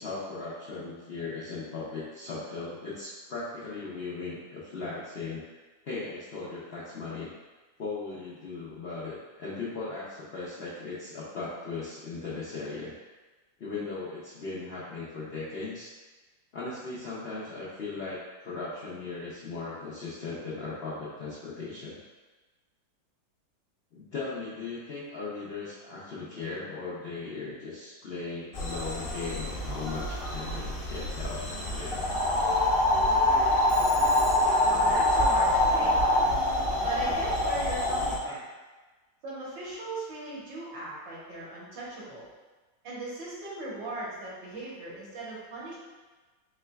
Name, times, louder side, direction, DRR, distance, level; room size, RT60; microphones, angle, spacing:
voice 1, 0.0-5.4 5.8-7.3 7.8-12.9 13.6-15.9 16.5-22.0 23.9-31.4 31.7-32.1 38.3-38.4, left 3 dB, 75° left, -8 dB, 0.5 m, -38 dB
sound 1, 28.5-38.2, left 1 dB, 45° left, 0.8 m, -25 dB
Telephone, 33.7-34.8, equal, 40° right, 0.4 m, -42 dB
voice 2, 34.6-36.0 36.8-38.4 39.2-42.2 42.8-45.8, right 2 dB, 80° right, -6 dB, 1.8 m, -38 dB
4.8 x 3.3 x 2.3 m, 1.3 s
omnidirectional pair, 2.0 m